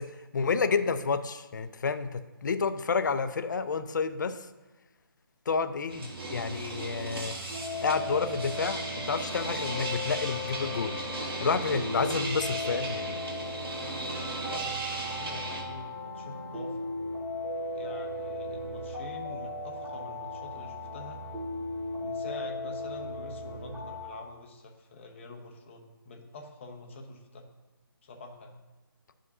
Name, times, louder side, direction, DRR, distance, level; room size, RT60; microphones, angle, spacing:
voice 1, 0.0-4.4 5.5-7.3 7.8-10.9 11.4-13.2, left 5 dB, 50° left, 11 dB, 0.5 m, -30 dB
sound 1, 5.9-15.6, right 2 dB, 75° right, 1.7 m, -37 dB
sound 2, 7.5-24.1, left 2 dB, 10° right, 2.0 m, -37 dB
voice 2, 14.5-16.9 17.7-21.2 22.0-27.5 28.0-28.6, left 2 dB, 30° left, 2 dB, 0.9 m, -45 dB
11.0 x 5.0 x 2.7 m, 1.1 s
figure-of-eight pair, 155°, 12 cm